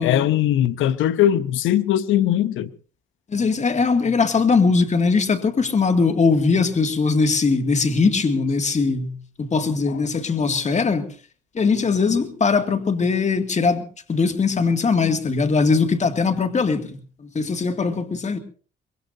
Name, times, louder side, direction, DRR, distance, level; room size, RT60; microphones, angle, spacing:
voice 1, 0.0-2.7, left 11 dB, 80° left, 0.8 m, -20 dB
voice 2, 3.3-11.1 11.5-13.8 14.1-18.4, left 4 dB, 35° left, 2.2 m, -20 dB
24.0 x 22.0 x 2.7 m
cardioid pair, 90°, 20 cm